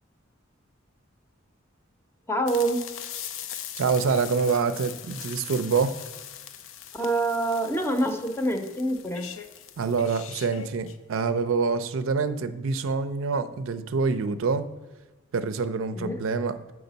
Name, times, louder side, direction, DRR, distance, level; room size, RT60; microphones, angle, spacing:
voice 1, 2.3-2.8 6.9-9.4 15.9-16.2, right 1 dB, 10° left, 6 dB, 0.5 m, -26 dB
sound 1, 2.5-11.0, left 9 dB, 75° left, 0.4 m, -41 dB
voice 2, 3.8-5.9 9.8-14.7 15.3-16.7, right 5 dB, 80° right, 11 dB, 0.4 m, -26 dB
7.8 x 4.8 x 3.9 m, 1.2 s
head